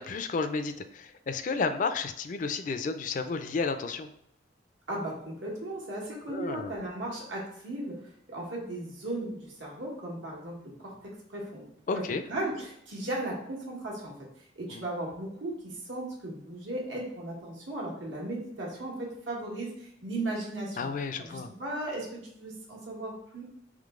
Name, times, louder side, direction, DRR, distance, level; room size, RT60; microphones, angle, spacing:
voice 1, 0.0-4.1 6.3-6.7 11.9-12.2 14.7-14.8 20.8-21.5, left 4 dB, 45° left, 9 dB, 0.3 m, -32 dB
voice 2, 4.9-10.9 11.3-11.7 11.9-14.1 14.5-20.9 21.2-22.1 22.3-23.4, right 1 dB, 90° right, -3 dB, 1.5 m, -36 dB
3.8 x 3.1 x 3.6 m, 0.74 s
head